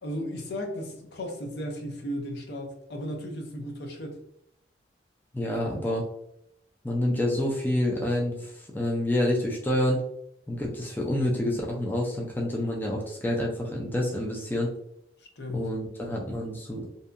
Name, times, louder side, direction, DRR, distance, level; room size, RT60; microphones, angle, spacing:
voice 1, 0.0-4.1 15.4-15.7, equal, 65° left, 3 dB, 0.6 m, -35 dB
voice 2, 5.3-6.1 6.8-10.0 10.5-14.7 15.5-16.9, left 1 dB, 10° left, -2 dB, 0.3 m, -28 dB
2.7 x 2.2 x 2.4 m, 0.75 s
head